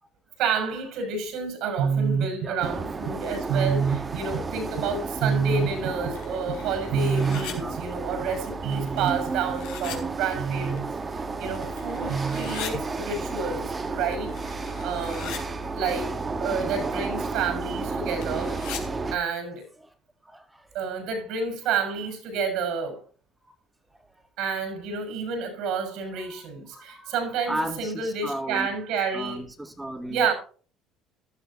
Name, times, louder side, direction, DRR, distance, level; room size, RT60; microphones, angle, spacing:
voice 1, 0.4-10.9 11.4-15.4 15.7-16.1 16.4-18.6 19.1-19.6 20.7-23.0 24.4-29.4 30.1-30.3, right 5 dB, 75° right, 6.5 m, -28 dB
sound 1, 2.6-19.2, right 3 dB, 25° right, 1.3 m, -32 dB
sound 2, 6.1-7.5 8.7-10.0 10.8-10.9 11.3-12.7 13.9-15.4 18.2-18.8, left 10 dB, 85° left, 3.4 m, -40 dB
voice 2, 20.2-20.7 23.4-23.5 26.2-27.1 27.5-28.7 29.1-30.3, right 1 dB, 10° right, 2.5 m, -35 dB
15.0 x 12.5 x 2.8 m
cardioid pair, 120°, 0 cm